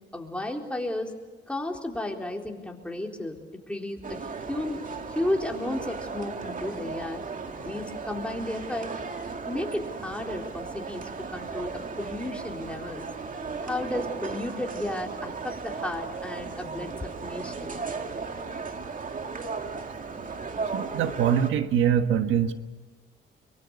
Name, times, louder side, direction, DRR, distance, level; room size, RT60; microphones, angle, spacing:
voice 1, 0.1-1.1 1.5-3.4 3.7-4.8 5.1-7.2 7.6-8.9 9.4-13.1 13.6-17.8, left 1 dB, 5° left, 1 dB, 4.0 m, -33 dB
sound 1, 4.0-21.5, right 4 dB, 40° right, 2.4 m, -36 dB
voice 2, 20.7-22.5, right 8 dB, 85° right, 8 dB, 1.4 m, -23 dB
24.0 x 23.5 x 8.3 m, 1.3 s
cardioid pair, 90°, 20 cm